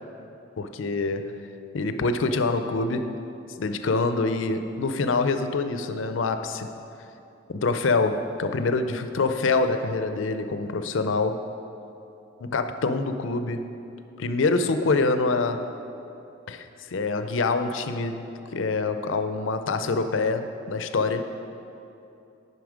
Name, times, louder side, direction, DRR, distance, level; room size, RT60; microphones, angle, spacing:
voice 1, 0.6-1.3 1.7-3.1 3.6-6.7 7.5-11.4 12.4-13.6 14.2-15.6 16.5-18.2 18.5-21.2, left 3 dB, 85° left, 9 dB, 0.5 m, -25 dB
9.3 x 5.7 x 5.0 m, 2.8 s
head